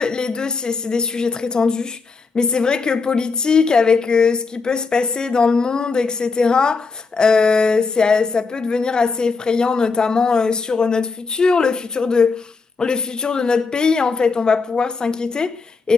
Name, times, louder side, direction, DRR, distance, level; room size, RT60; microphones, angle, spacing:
voice 1, 0.0-12.5 12.8-15.9, left 5 dB, 20° left, 1.6 m, -19 dB
17.0 x 12.0 x 6.4 m
cardioid pair, 150°, 4 cm